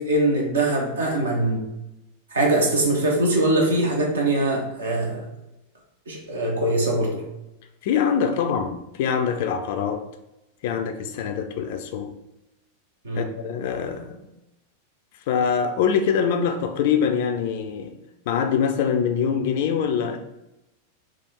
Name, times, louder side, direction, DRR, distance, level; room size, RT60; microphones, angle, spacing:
voice 1, 0.0-1.7 2.3-5.3 6.1-7.2 13.0-13.3, right 1 dB, 70° right, 0 dB, 0.9 m, -22 dB
voice 2, 7.8-10.0 10.6-12.1 13.2-14.2 15.3-18.0 18.3-20.2, left 7 dB, 50° left, 6 dB, 0.4 m, -24 dB
3.5 x 2.4 x 4.4 m, 0.93 s
figure-of-eight pair, 90°, 0 cm